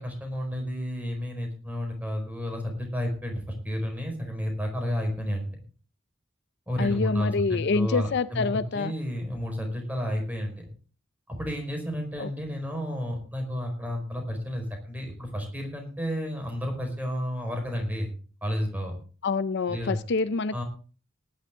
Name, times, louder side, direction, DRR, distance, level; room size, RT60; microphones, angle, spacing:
voice 1, 0.0-5.6 6.7-8.5 8.7-10.7 11.3-18.1 18.4-18.9 19.7-20.0 20.5-20.6, equal, 10° right, 4.5 m, -31 dB
voice 2, 6.8-8.9 12.2-12.3 19.2-20.6, left 4 dB, 55° left, 0.5 m, -26 dB
19.0 x 10.5 x 3.6 m
head